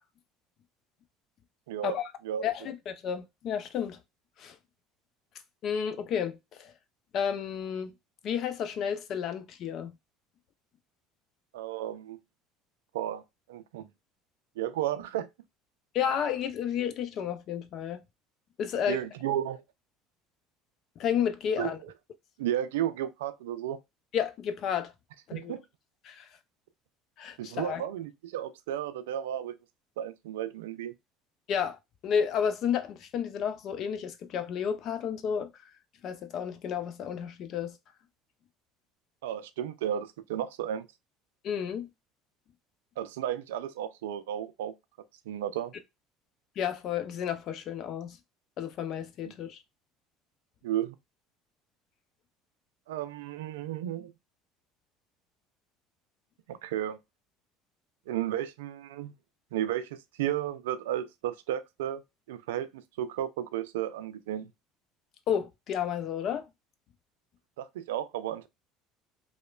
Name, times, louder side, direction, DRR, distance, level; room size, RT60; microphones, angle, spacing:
voice 1, 1.7-2.0 2.2-2.5 11.5-12.2 12.9-13.2 13.5-13.9 14.6-15.3 18.9-19.6 21.6-21.9 22.4-23.8 25.3-25.6 27.4-29.5 30.0-30.9 39.2-40.9 43.0-44.7 45.3-45.7 49.2-49.3 50.6-50.9 52.9-54.1 56.5-57.0 58.1-59.1 59.5-59.9 60.2-62.0 62.3-64.5 67.6-68.5, right 11 dB, 85° right, 0.3 m, -33 dB
voice 2, 2.4-4.0 4.4-4.6 5.6-6.7 7.1-7.9 8.2-9.9 15.9-18.0 18.6-19.0 21.0-21.8 24.1-24.9 25.3-25.5 26.0-26.3 27.2-27.8 31.5-31.8 32.0-35.5 36.0-37.8 41.4-41.9 46.6-48.2 48.6-49.6 65.3-66.5, left 8 dB, 55° left, 0.5 m, -31 dB
2.9 x 2.1 x 2.3 m
hypercardioid pair, 75°, 0 cm